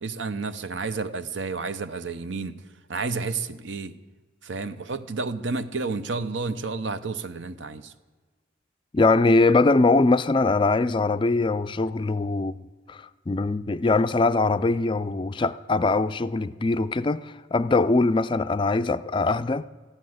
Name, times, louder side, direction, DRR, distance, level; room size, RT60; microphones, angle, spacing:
voice 1, 0.0-2.5 2.9-3.9 4.4-7.9, right 4 dB, 75° right, 0.8 m, -31 dB
voice 2, 8.9-12.6 12.9-19.7, left 3 dB, 25° left, 0.4 m, -22 dB
14.5 x 11.0 x 7.8 m
head